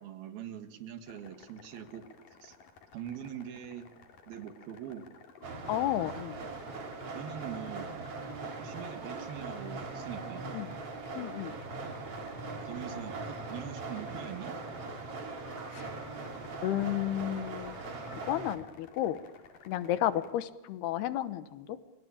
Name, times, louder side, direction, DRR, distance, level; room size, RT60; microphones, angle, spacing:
voice 1, 0.0-2.1 2.4-2.6 2.9-3.9 4.3-5.1 7.1-7.9 8.6-10.6 12.6-14.6, right 9 dB, 70° right, 9 dB, 3.6 m, -43 dB
sound 1, 1.0-20.3, left 6 dB, 60° left, 4.0 m, -54 dB
sound 2, 5.4-18.6, right 3 dB, 40° right, 3.2 m, -40 dB
voice 2, 5.7-6.4 10.5-10.7 11.1-11.6 15.7-15.9 16.6-17.8 18.1-19.2 19.7-21.8, left 12 dB, 80° left, 14 dB, 3.1 m, -32 dB
28.5 x 24.0 x 8.7 m, 1.1 s
omnidirectional pair, 4.6 m